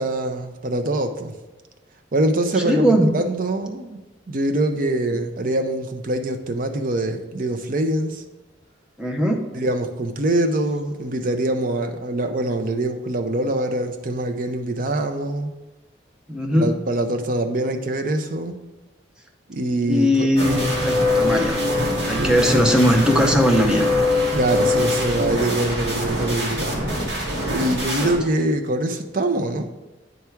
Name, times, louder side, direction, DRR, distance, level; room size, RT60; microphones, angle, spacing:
voice 1, 0.0-1.3 2.1-4.0 4.3-8.2 9.5-15.5 16.5-18.6 19.5-20.3 22.2-22.6 24.3-26.8 27.5-29.7, right 1 dB, 45° right, 6 dB, 0.6 m, -24 dB
voice 2, 2.6-3.1 9.0-9.4 16.3-16.8 19.8-21.6 22.1-23.9 27.8-28.1, equal, 5° right, 1 dB, 0.6 m, -19 dB
sound 1, 20.4-28.1, left 1 dB, 60° right, 1.8 m, -23 dB
9.3 x 3.5 x 4.5 m, 1.1 s
head